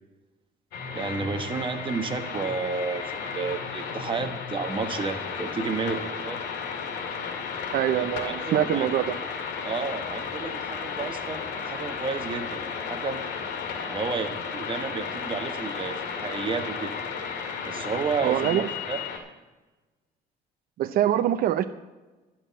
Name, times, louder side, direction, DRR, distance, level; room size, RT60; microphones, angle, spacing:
sound 1, 0.7-19.2, left 6 dB, 85° left, 2.1 m, -34 dB
voice 1, 0.9-6.4 7.9-9.1 9.6-13.2 13.9-16.9 17.6-19.1, right 4 dB, 30° right, 6 dB, 1.3 m, -32 dB
voice 2, 7.7-9.1 18.2-18.7 20.8-21.6, right 11 dB, 60° right, 8 dB, 0.6 m, -24 dB
12.0 x 5.9 x 9.3 m, 1.2 s
cardioid pair, 110°, 17 cm